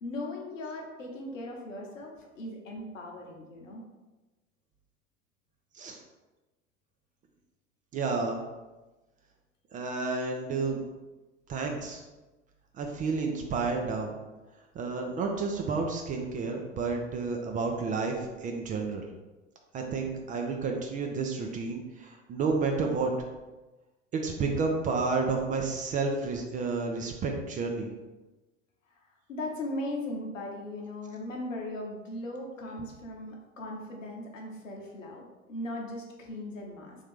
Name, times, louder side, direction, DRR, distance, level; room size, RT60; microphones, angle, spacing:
voice 1, 0.0-3.8 29.3-35.2 35.5-37.0, left 1 dB, 80° left, 0 dB, 0.9 m, -38 dB
voice 2, 7.9-8.4 9.7-10.8 11.5-12.0 12.8-14.1 14.7-19.0 19.7-23.1 24.1-27.9, right 4 dB, 20° right, 2 dB, 0.4 m, -30 dB
3.3 x 2.6 x 3.5 m, 1.1 s
figure-of-eight pair, 80°, 38 cm